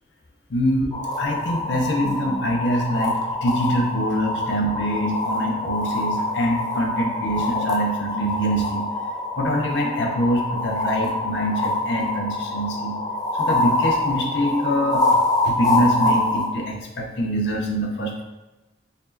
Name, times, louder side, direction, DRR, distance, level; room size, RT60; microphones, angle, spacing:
voice 1, 0.5-0.9 1.2-8.9 9.4-13.0 13.3-18.2, equal, 70° left, 1 dB, 0.6 m, -24 dB
sound 1, 0.9-16.5, left 2 dB, 20° left, 0.4 m, -25 dB
4.1 x 3.0 x 2.7 m, 1.1 s
head